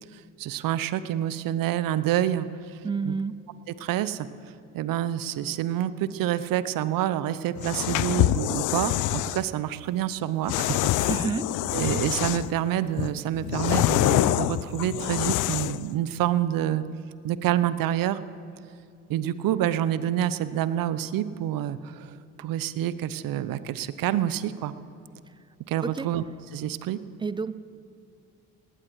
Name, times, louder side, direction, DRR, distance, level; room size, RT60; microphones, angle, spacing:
voice 1, 0.1-2.8 3.0-3.1 3.8-4.3 4.7-11.3 11.7-16.8 17.2-18.2 19.1-24.7 25.7-26.2 26.5-27.0, right 11 dB, 50° right, 15 dB, 0.8 m, -27 dB
voice 2, 2.8-3.4 11.1-11.8 25.8-26.1 27.2-27.5, right 4 dB, 15° right, 16 dB, 0.3 m, -30 dB
sound 1, 7.5-9.4 10.5-12.6 13.0-15.9, left 15 dB, 45° left, 0.5 m, -25 dB
20.0 x 18.5 x 3.2 m, 2.4 s
hypercardioid pair, 50°, 43 cm